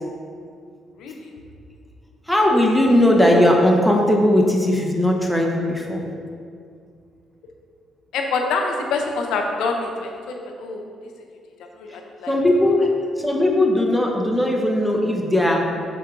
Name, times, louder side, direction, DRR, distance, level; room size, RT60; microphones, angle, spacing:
voice 1, 1.0-1.3 8.1-10.8 11.8-12.3, left 4 dB, 85° left, 2 dB, 0.6 m, -26 dB
voice 2, 2.3-6.0 12.3-12.9 13.2-15.7, left 1 dB, ahead, -1 dB, 0.9 m, -18 dB
5.9 x 4.5 x 3.7 m, 2.3 s
cardioid pair, 90°, 0 cm